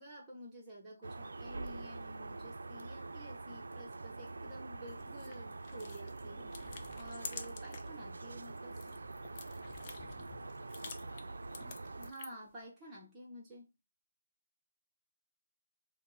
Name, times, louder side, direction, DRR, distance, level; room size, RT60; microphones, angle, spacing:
voice 1, 0.0-6.5 6.9-8.9 12.0-13.7, equal, 10° right, 0.7 m, -51 dB
sound 1, 1.0-12.1, right 3 dB, 90° right, 0.3 m, -45 dB
sound 2, 4.9-8.0 8.3-12.5, left 5 dB, 20° left, 0.4 m, -50 dB
voice 2, 10.4-11.8, left 3 dB, 60° left, 1.1 m, -61 dB
4.2 x 2.0 x 3.8 m
hypercardioid pair, 175°, 0 cm